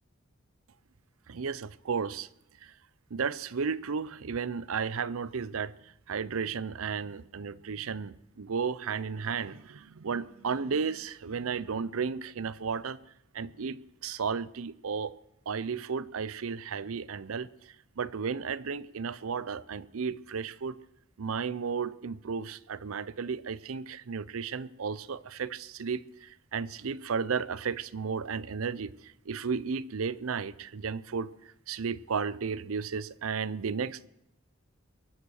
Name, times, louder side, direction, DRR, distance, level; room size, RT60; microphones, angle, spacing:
voice 1, 1.3-2.3 2.6-2.7 3.1-13.0 13.3-15.1 15.5-20.8 21.2-31.3 31.7-34.1, right 5 dB, 80° right, 0.6 m, -34 dB
23.0 x 8.3 x 6.4 m
head